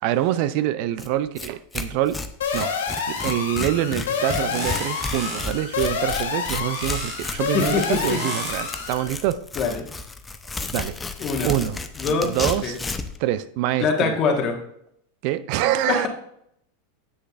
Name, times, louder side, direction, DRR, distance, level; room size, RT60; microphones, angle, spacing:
voice 1, 0.0-2.2 2.5-2.7 3.1-9.4 10.7-11.0 11.4-11.8 12.2-12.8 13.2-14.1 15.2-16.1, right 13 dB, 55° right, 0.3 m, -25 dB
Tearing, 1.0-1.1 1.4-1.5 1.7-13.2, left 3 dB, 15° left, 0.5 m, -32 dB
sound 1, 2.4-9.1, left 6 dB, 90° left, 1.1 m, -28 dB
sound 2, 3.5-5.8 6.7-9.0, right 3 dB, 30° right, 1.2 m, -37 dB
voice 2, 7.5-8.2 9.6-9.8 11.2-11.5 12.0-12.3 12.6-12.8 13.8-14.5 15.9-16.1, left 5 dB, 40° left, 1.4 m, -23 dB
7.9 x 6.5 x 2.5 m
hypercardioid pair, 115°, 0 cm